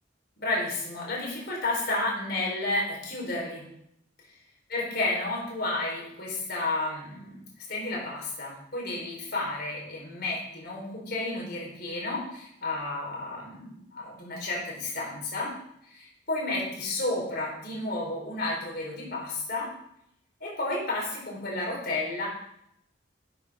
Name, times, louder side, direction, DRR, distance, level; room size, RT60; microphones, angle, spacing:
voice 1, 0.4-3.7 4.7-15.5 15.9-19.7 20.4-22.3, left 2 dB, 55° left, -3 dB, 4.3 m, -32 dB
12.0 x 8.8 x 3.7 m, 0.75 s
head